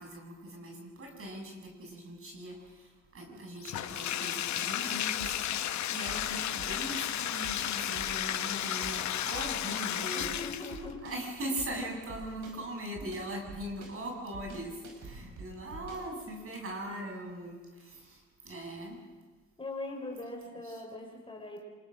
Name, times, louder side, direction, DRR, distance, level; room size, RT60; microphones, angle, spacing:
voice 1, 0.0-10.4 11.0-19.0 20.6-20.8, right 1 dB, 45° right, 1 dB, 7.2 m, -40 dB
Bathtub (filling or washing), 3.6-10.9, left 11 dB, 65° left, 0.9 m, -33 dB
sound 1, 5.2-16.1, right 3 dB, 70° right, 5.8 m, -47 dB
voice 2, 10.1-11.1 19.6-21.6, left 2 dB, 15° left, 0 dB, 5.8 m, -41 dB
27.0 x 20.0 x 6.4 m, 1.4 s
cardioid pair, 90°, 30 cm